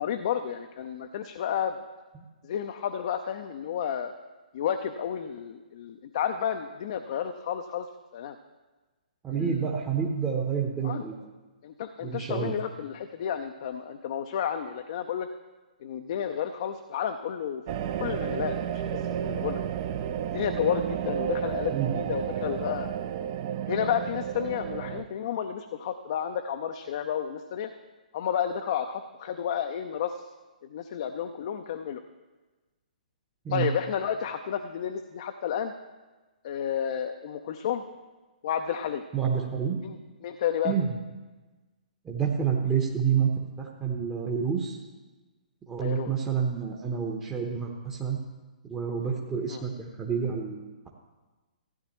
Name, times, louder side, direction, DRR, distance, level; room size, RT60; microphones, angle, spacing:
voice 1, 0.0-1.8 2.4-4.1 4.5-7.9 8.1-8.4 9.4-9.7 10.8-11.0 11.6-15.3 15.8-17.6 18.0-18.6 19.2-19.6 20.3-22.9 23.7-27.7 28.1-30.2 30.7-32.0 33.5-35.7 36.4-37.8 38.4-39.0 39.8-40.0 40.2-40.7 45.8-46.1 49.5-49.6, left 9 dB, 45° left, 6 dB, 0.5 m, -31 dB
voice 2, 9.2-11.2 12.0-12.5 21.7-21.9 33.4-33.7 39.1-39.8 40.6-41.0 42.0-43.3 43.6-44.8 45.7-48.2 48.6-50.9, right 7 dB, 15° right, -2 dB, 0.9 m, -28 dB
sound 1, 17.7-25.0, right 9 dB, 35° right, 0.5 m, -32 dB
16.0 x 9.7 x 3.1 m, 1.2 s
figure-of-eight pair, 120°, 4 cm